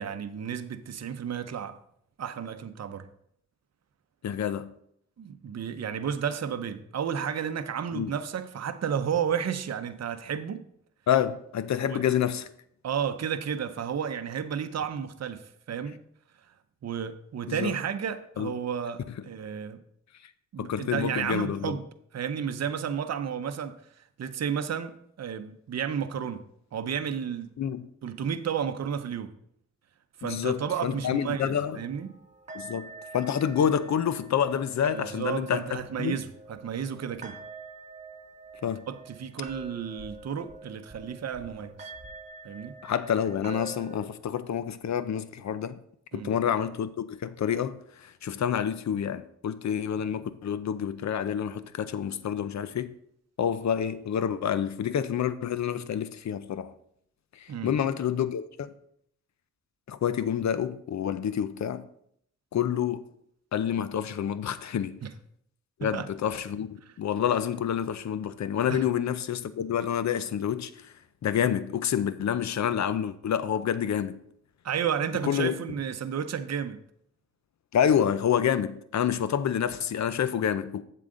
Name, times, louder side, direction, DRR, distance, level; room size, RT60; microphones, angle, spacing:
voice 1, 0.0-1.8 2.2-3.1 5.2-10.7 11.8-12.0 12.8-16.0 16.8-19.8 20.5-21.8 22.1-26.4 26.7-27.5 28.0-29.3 30.2-32.1 34.9-37.4 38.9-41.9 42.4-42.8 46.1-46.3 57.5-57.7 65.0-65.1 65.8-66.1 68.7-68.8 74.6-76.8, right 8 dB, 60° right, 0.7 m, -32 dB
voice 2, 4.2-4.7 7.9-8.1 11.1-12.5 17.5-17.7 18.4-18.5 20.6-21.8 27.6-27.8 30.2-31.8 32.5-35.6 36.0-36.2 38.6-38.9 42.8-45.8 46.1-52.9 53.4-56.7 57.3-58.7 59.9-61.8 62.5-63.1 63.5-65.0 65.8-66.7 67.0-70.9 71.2-74.2 75.2-75.5 77.7-80.8, left 9 dB, 65° left, 0.6 m, -28 dB
sound 1, 31.7-44.0, right 3 dB, 25° right, 1.7 m, -46 dB
7.6 x 7.5 x 3.8 m
wide cardioid pair, 90°, 30 cm